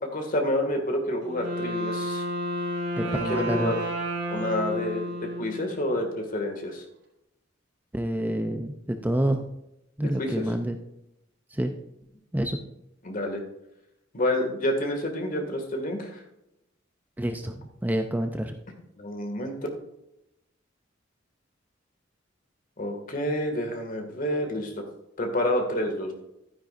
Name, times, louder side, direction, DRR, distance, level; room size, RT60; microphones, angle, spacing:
voice 1, 0.1-2.2 3.0-3.8 4.3-6.8 10.0-10.4 13.0-13.4 14.1-16.2 19.0-19.5 22.8-24.8 25.2-26.1, left 1 dB, 45° left, 3 dB, 2.0 m, -29 dB
Wind instrument woodwind instrument, 1.2-6.1, equal, 65° right, 3.8 m, -31 dB
voice 2, 3.0-3.7 7.9-9.5 10.0-10.8 11.5-11.7 12.3-12.6 17.2-18.6, right 1 dB, 10° right, 6 dB, 0.5 m, -28 dB
12.0 x 9.9 x 2.5 m, 0.85 s
head